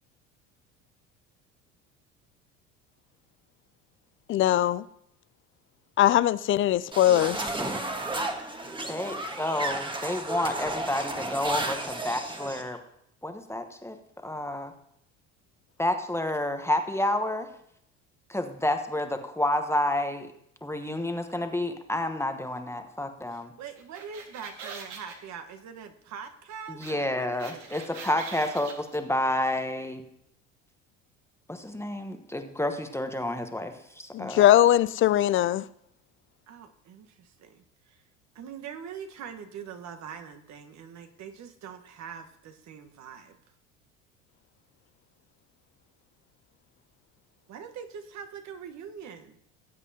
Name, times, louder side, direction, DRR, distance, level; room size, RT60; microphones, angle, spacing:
voice 1, 4.3-4.8 6.0-7.4 34.1-35.6, left 12 dB, 35° left, 18 dB, 0.4 m, -21 dB
sound 1, 6.9-12.7, right 2 dB, 15° right, 1.5 m, -33 dB
voice 2, 8.9-12.8 13.2-14.0 14.2-14.7 15.8-17.5 18.3-20.3 20.6-23.5 26.7-30.0 31.5-34.5, left 1 dB, 5° left, 6 dB, 1.1 m, -29 dB
voice 3, 23.3-27.8 36.5-38.0 38.3-43.4 47.5-49.4, right 7 dB, 50° right, 7 dB, 1.3 m, -43 dB
sound 2, 23.8-25.2 26.8-26.9 27.2-29.0, right 5 dB, 80° right, 2.0 m, -42 dB
18.5 x 8.2 x 2.8 m, 0.75 s
hypercardioid pair, 70°, 37 cm